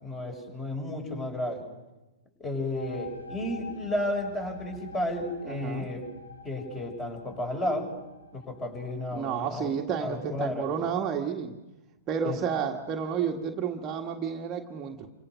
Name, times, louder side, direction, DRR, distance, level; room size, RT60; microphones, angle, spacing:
voice 1, 0.0-1.6 2.4-6.0 6.4-7.9 8.3-10.7 12.2-12.4, left 1 dB, 15° left, 5 dB, 6.6 m, -32 dB
sound 1, 2.5-10.0, left 4 dB, 85° left, 3.5 m, -47 dB
voice 2, 5.4-5.9 9.1-11.5 12.1-15.1, right 7 dB, 25° right, 2 dB, 1.7 m, -31 dB
28.5 x 26.5 x 6.4 m, 1.1 s
figure-of-eight pair, 110°, 0 cm